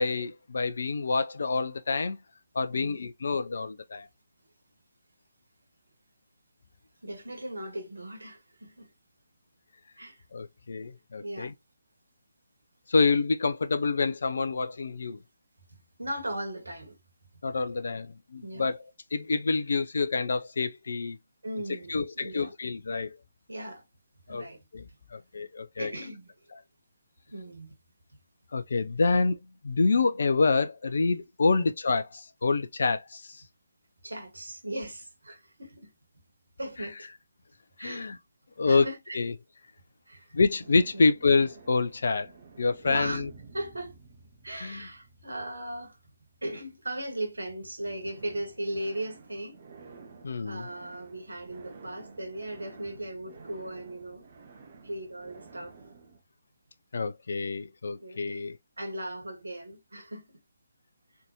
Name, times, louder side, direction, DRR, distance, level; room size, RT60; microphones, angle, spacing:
voice 1, 0.0-2.2 2.5-4.1 10.3-11.5 12.9-15.2 17.4-18.8 19.1-21.2 21.9-23.2 24.3-24.5 24.7-24.8 25.1-25.9 28.5-29.4 29.6-33.4 36.8-36.9 37.8-38.2 38.6-38.9 39.1-39.3 40.3-42.3 42.6-43.3 44.6-44.9 50.2-50.7 56.9-58.6, left 4 dB, 55° left, 0.5 m, -27 dB
voice 2, 2.7-3.1 7.0-8.9 10.0-10.2 11.2-11.5 16.0-17.0 18.4-18.7 21.4-22.5 23.5-23.8 24.3-24.6 25.8-26.3 27.3-27.7 31.5-31.7 34.0-35.9 36.6-37.1 37.8-38.2 38.6-39.2 40.1-40.4 40.9-41.1 42.9-43.2 43.5-43.9 44.4-46.0 46.4-49.6 50.4-54.2 54.8-55.8 58.0-58.4 58.8-60.4, right 1 dB, 70° right, 1.7 m, -38 dB
sound 1, 40.6-47.5 47.9-56.2, right 4 dB, 40° right, 0.9 m, -50 dB
4.0 x 3.4 x 2.9 m
figure-of-eight pair, 145°, 0 cm